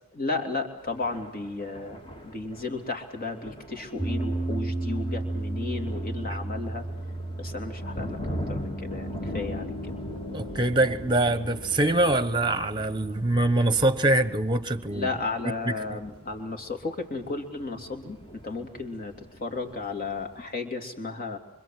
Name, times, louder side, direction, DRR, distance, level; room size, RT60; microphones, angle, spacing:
voice 1, 0.1-6.9 7.4-9.9 14.9-19.1 19.4-21.4, left 3 dB, 40° left, 3.1 m, -34 dB
Thunder, 0.8-20.5, equal, 25° left, 2.0 m, -42 dB
sound 1, 4.0-14.2, right 2 dB, 5° left, 2.7 m, -35 dB
Piano, 7.8-15.3, left 1 dB, 80° left, 1.4 m, -42 dB
voice 2, 10.3-15.1 15.9-16.0, right 2 dB, 20° right, 1.2 m, -24 dB
25.5 x 25.0 x 7.7 m
head